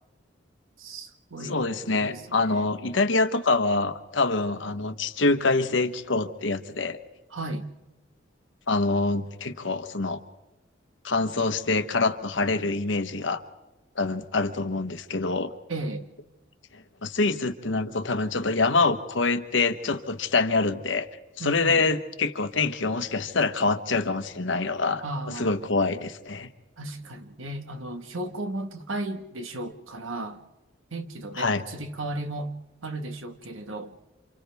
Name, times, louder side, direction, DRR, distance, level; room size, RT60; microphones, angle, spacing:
voice 1, 0.8-1.6 2.0-2.6 7.3-7.6 15.7-16.1 21.4-21.8 25.0-25.6 26.8-30.4 30.9-32.5 32.8-33.9, right 1 dB, 85° right, 1.5 m, -35 dB
voice 2, 1.4-7.0 8.7-10.2 11.0-13.4 14.0-15.5 16.7-21.1 21.4-25.0 25.4-26.5 31.4-31.6, left 3 dB, 70° left, 1.1 m, -25 dB
29.0 x 27.0 x 3.5 m
head